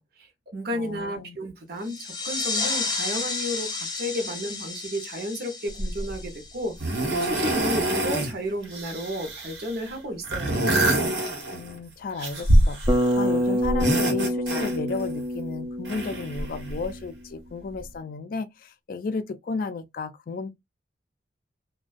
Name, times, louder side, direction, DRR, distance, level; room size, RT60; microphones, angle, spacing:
voice 1, 0.0-6.8 7.2-10.8, equal, 60° right, 0.8 m, -33 dB
voice 2, 0.7-1.4 11.5-20.5, left 4 dB, 55° left, 0.4 m, -33 dB
sound 1, 1.8-7.1, left 3 dB, 25° left, 0.7 m, -32 dB
sound 2, 5.8-6.1 6.8-8.3 8.6-9.8 10.2-11.8 12.2-13.3 13.6-15.1 15.8-16.9 17.8-17.9, right 1 dB, 90° right, 1.1 m, -25 dB
Bass guitar, 12.9-17.0, equal, 20° right, 0.4 m, -27 dB
2.4 x 2.2 x 2.4 m
head